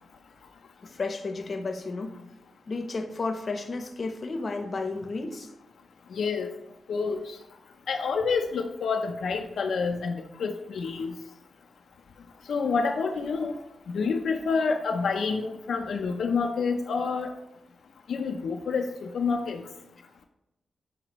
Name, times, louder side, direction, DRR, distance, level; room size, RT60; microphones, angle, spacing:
voice 1, 0.8-2.2 2.7-5.5, left 3 dB, 50° left, 6 dB, 0.7 m, -32 dB
voice 2, 6.1-6.5 6.9-7.2 7.9-10.1 10.4-11.1 12.5-13.5 13.9-17.3 18.1-19.6, left 5 dB, 85° left, 3 dB, 0.5 m, -28 dB
7.5 x 4.9 x 3.0 m, 0.89 s
wide cardioid pair, 95°, 0 cm